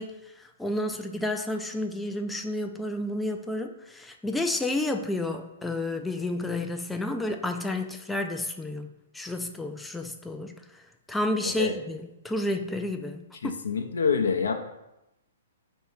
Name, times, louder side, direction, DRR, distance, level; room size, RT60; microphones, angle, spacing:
voice 1, 0.0-10.5 11.1-13.6, left 1 dB, 5° left, 5 dB, 0.3 m, -31 dB
voice 2, 13.4-14.5, left 6 dB, 70° left, 5 dB, 0.5 m, -26 dB
4.2 x 2.6 x 4.7 m, 0.92 s
figure-of-eight pair, 115°, 0 cm